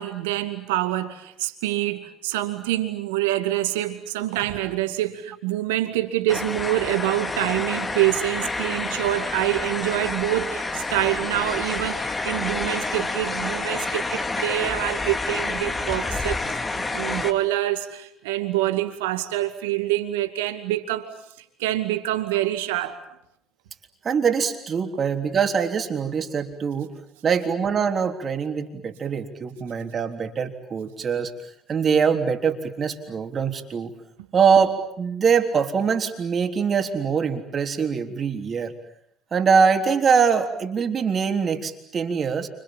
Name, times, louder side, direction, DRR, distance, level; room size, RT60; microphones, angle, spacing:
voice 1, 0.0-16.4 16.8-21.1 21.6-23.0, right 15 dB, 75° right, 9 dB, 2.3 m, -26 dB
sound 1, 6.3-17.3, left 3 dB, 25° left, 2.5 m, -28 dB
voice 2, 24.0-26.9 27.2-31.3 31.7-33.9 34.3-38.7 39.3-42.5, right 6 dB, 40° right, 5 dB, 3.5 m, -23 dB
29.5 x 27.0 x 7.4 m, 0.72 s
hypercardioid pair, 60°, 0 cm